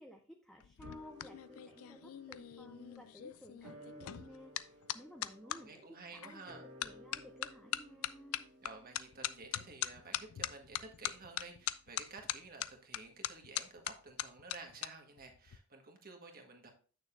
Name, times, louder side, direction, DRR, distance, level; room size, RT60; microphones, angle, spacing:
voice 1, 0.0-5.8 6.1-6.4 6.8-8.5, equal, ahead, 2 dB, 0.6 m, -55 dB
sound 1, 0.6-5.6 6.2-6.5 6.8-14.9 15.2-15.6, left 12 dB, 80° left, 0.4 m, -41 dB
sound 2, 0.8-11.4 11.7-11.8, left 1 dB, 65° right, 2.1 m, -58 dB
voice 2, 5.4-6.7 8.6-16.7, right 3 dB, 45° right, 4 dB, 1.5 m, -52 dB
8.7 x 6.6 x 2.5 m, 0.39 s
head